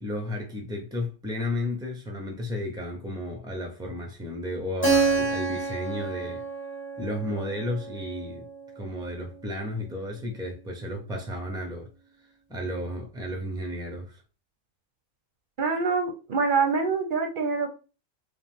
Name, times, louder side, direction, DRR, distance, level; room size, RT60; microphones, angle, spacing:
voice 1, 0.0-6.4 7.0-8.5 8.7-11.9 12.2-14.2, left 1 dB, 5° right, 0.3 m, -33 dB
Keyboard (musical), 4.8-9.4, right 4 dB, 10° left, 0.7 m, -29 dB
voice 2, 15.6-17.7, right 4 dB, 50° right, 0.7 m, -25 dB
5.2 x 2.1 x 3.5 m
omnidirectional pair, 1.4 m